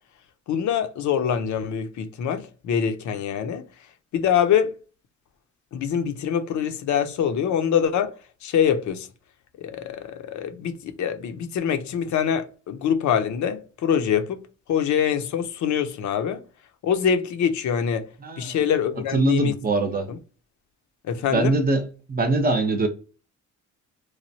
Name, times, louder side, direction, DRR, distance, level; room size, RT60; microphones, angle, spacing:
voice 1, 0.5-3.6 4.1-4.7 5.7-8.1 8.4-9.1 9.6-14.4 14.7-16.4 16.8-18.1 18.4-19.6 20.1-20.2 21.1-21.5, left 8 dB, 70° left, 0.7 m, -24 dB
voice 2, 18.2-18.6 19.1-20.1 21.3-22.9, right 2 dB, 30° right, 0.7 m, -23 dB
3.1 x 2.2 x 2.7 m
cardioid pair, 90°, 30 cm